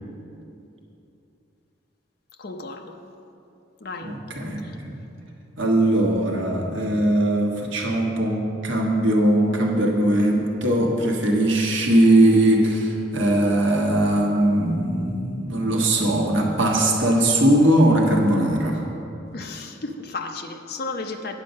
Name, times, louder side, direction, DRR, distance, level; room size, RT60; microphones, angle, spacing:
voice 1, 2.4-3.0 3.8-4.2 4.6-4.8 19.3-21.4, left 3 dB, 50° left, 4 dB, 0.7 m, -34 dB
voice 2, 4.0-5.0 5.6-18.8, right 1 dB, 70° right, 0 dB, 1.2 m, -20 dB
9.1 x 7.5 x 5.2 m, 2.8 s
head